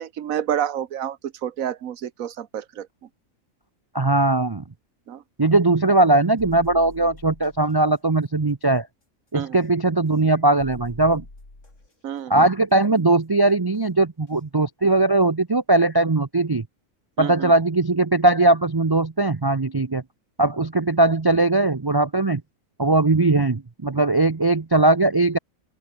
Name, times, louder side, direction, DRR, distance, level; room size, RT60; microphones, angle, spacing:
voice 1, 0.0-2.9 5.1-5.2 9.3-9.6 12.0-12.4 17.2-17.5 23.2-23.3, right 10 dB, 80° right, 1.4 m, -29 dB
voice 2, 3.9-4.6 5.4-8.9 9.3-11.2 12.3-16.6 17.2-20.0 20.4-22.4 22.8-25.4, right 2 dB, 25° right, 0.5 m, -19 dB
sound 1, 6.4-7.7 9.5-9.6 10.6-11.9 13.7-13.8 14.3-14.4, left 2 dB, 60° left, 5.5 m, -44 dB
open air
omnidirectional pair, 1.4 m